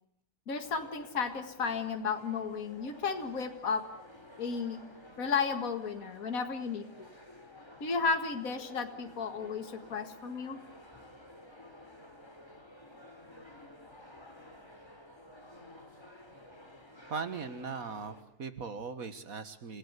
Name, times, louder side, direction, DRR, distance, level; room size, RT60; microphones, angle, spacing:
voice 1, 0.5-3.8 4.4-4.8 5.2-7.1 7.8-10.6, left 5 dB, 65° left, 6 dB, 2.3 m, -33 dB
sound 1, 0.6-18.2, left 1 dB, 15° left, 3.7 m, -53 dB
voice 2, 17.1-19.8, right 5 dB, 65° right, 11 dB, 2.0 m, -39 dB
28.5 x 17.0 x 8.2 m, 0.73 s
omnidirectional pair, 1.6 m